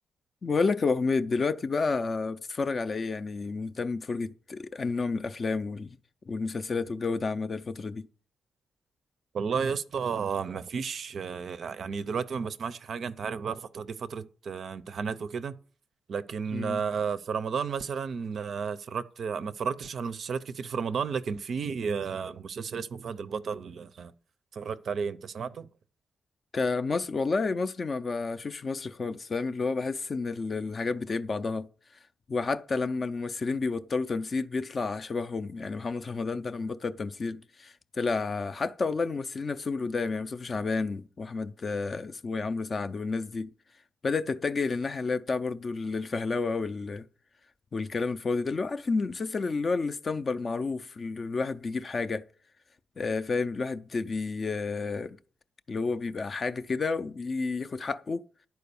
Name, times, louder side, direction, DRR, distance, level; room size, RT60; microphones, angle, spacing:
voice 1, 0.4-6.0 6.3-8.1 16.5-16.8 26.5-31.7 32.3-43.5 44.0-47.1 47.7-52.2 53.0-55.2 55.7-58.2, left 4 dB, 30° left, 0.4 m, -30 dB
voice 2, 9.3-15.5 16.1-24.1 24.5-25.7, right 6 dB, 45° right, 0.5 m, -33 dB
11.0 x 4.7 x 6.8 m
wide cardioid pair, 180°, 0 cm